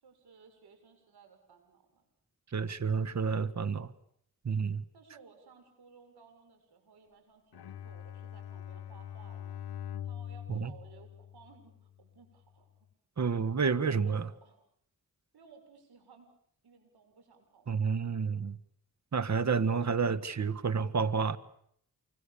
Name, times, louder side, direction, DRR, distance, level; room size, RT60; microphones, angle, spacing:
voice 1, 0.0-2.0 4.9-9.6 10.0-12.7 13.6-13.8 14.0-14.2 14.4-14.6 15.3-16.3 16.6-18.0, right 5 dB, 85° right, 7.2 m, -58 dB
voice 2, 2.5-3.9 4.4-4.8 10.5-10.7 13.2-14.3 17.7-18.6 19.1-21.4, right 5 dB, 45° right, 1.7 m, -30 dB
Bowed string instrument, 7.5-11.9, left 10 dB, 85° left, 1.0 m, -43 dB
28.5 x 25.5 x 7.2 m
cardioid pair, 65°, 38 cm